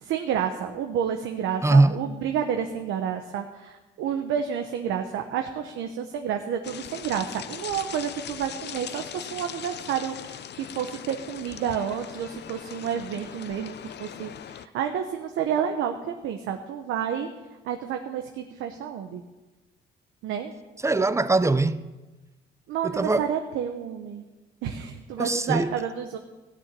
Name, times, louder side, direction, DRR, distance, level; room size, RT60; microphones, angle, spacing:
voice 1, 0.0-17.3 17.6-19.2 20.2-20.5 22.7-24.2 24.6-26.2, right 8 dB, 90° right, 1.0 m, -30 dB
voice 2, 1.6-2.0 20.8-21.8 22.8-23.3 25.2-25.7, right 2 dB, 15° right, 0.7 m, -21 dB
sound 1, 6.6-14.7, left 9 dB, 60° left, 0.7 m, -40 dB
15.5 x 6.9 x 9.8 m
cardioid pair, 90°, 20 cm